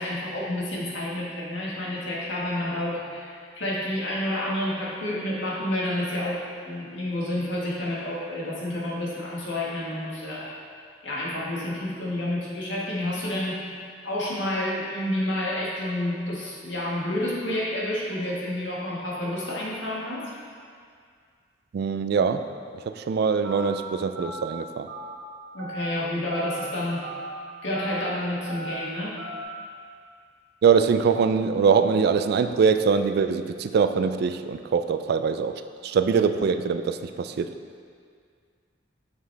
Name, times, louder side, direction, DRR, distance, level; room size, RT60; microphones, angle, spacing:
voice 1, 0.0-10.5 11.0-13.6 14.0-20.2 25.5-27.0 27.6-29.1, left 1 dB, 75° left, -6 dB, 1.6 m, -29 dB
voice 2, 21.7-22.5 22.9-24.9 30.6-37.5, right 6 dB, 55° right, 10 dB, 0.3 m, -23 dB
Telephone, 23.4-23.7 24.1-24.4 24.9-25.1 25.6-25.9 26.3-26.6 27.0-27.3 27.7-28.0 28.5-28.7 29.2-29.4, right 1 dB, 75° right, 1.2 m, -37 dB
7.0 x 6.4 x 3.4 m, 2.1 s
head